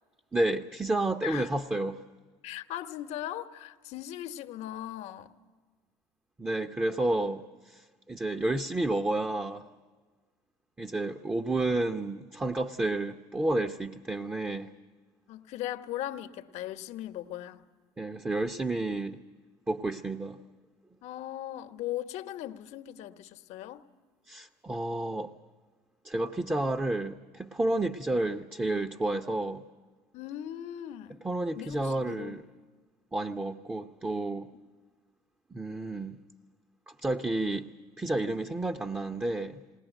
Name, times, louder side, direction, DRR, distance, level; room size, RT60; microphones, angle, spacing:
voice 1, 0.3-2.0 6.4-9.7 10.8-14.7 18.0-19.2 19.7-20.4 24.3-25.3 26.0-29.6 31.2-32.4 33.1-34.5 35.5-36.2 37.0-37.7 38.0-39.6, right 2 dB, 15° right, 0.7 m, -30 dB
voice 2, 2.4-5.3 15.3-17.7 21.0-23.9 30.1-31.2 31.6-32.4, left 12 dB, 70° left, 1.1 m, -38 dB
20.0 x 19.5 x 9.0 m
cardioid pair, 105°, 12 cm